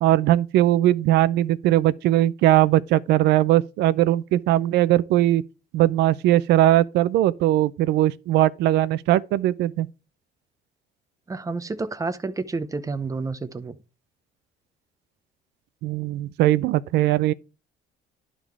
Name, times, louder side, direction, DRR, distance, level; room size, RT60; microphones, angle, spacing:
voice 1, 0.0-5.4 5.7-9.9 15.8-17.3, right 14 dB, 80° right, 0.5 m, -20 dB
voice 2, 11.3-13.7, right 3 dB, 20° right, 0.8 m, -30 dB
11.0 x 3.8 x 4.6 m
cardioid pair, 110°, 17 cm